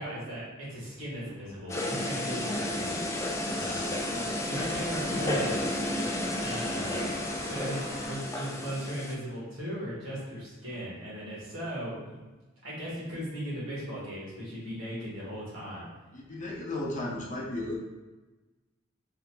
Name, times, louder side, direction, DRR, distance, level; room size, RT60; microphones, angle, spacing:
voice 1, 0.0-4.0 4.4-5.8 6.4-12.2 12.6-15.9, equal, 80° right, -7 dB, 1.5 m, -37 dB
sound 1, 1.0-9.3, equal, 55° right, 1.1 m, -45 dB
sound 2, 1.7-9.1, left 1 dB, 15° left, 0.3 m, -32 dB
voice 2, 3.5-4.7 5.0-5.4 16.1-17.8, left 2 dB, 40° left, -3 dB, 0.7 m, -36 dB
3.8 x 2.8 x 2.2 m, 1.2 s
head